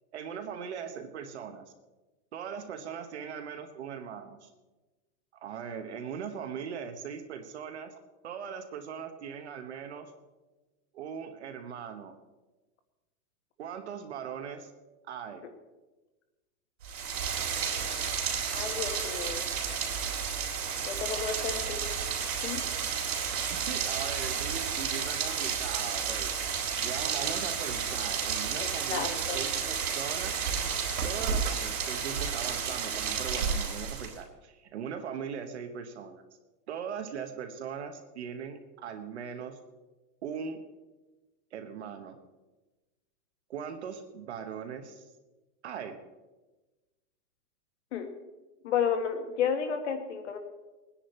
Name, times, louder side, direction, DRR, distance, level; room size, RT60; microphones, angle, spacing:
voice 1, 0.1-1.6 2.3-4.5 5.4-7.9 8.2-10.1 10.9-12.2 13.6-14.7 15.1-15.4 23.5-26.3 26.8-30.4 31.0-36.2 36.7-39.6 40.2-40.6 41.5-42.2 43.5-45.0 45.6-46.0, right 7 dB, 45° right, 6 dB, 1.2 m, -39 dB
Rain, 16.8-34.2, right 7 dB, 65° right, 3.6 m, -31 dB
voice 2, 18.5-19.4 20.9-21.8 22.4-22.6 28.6-29.4 47.9-48.1 48.6-50.4, left 7 dB, 45° left, 7 dB, 1.7 m, -32 dB
20.0 x 10.0 x 4.3 m, 1.2 s
supercardioid pair, 180°, 48 cm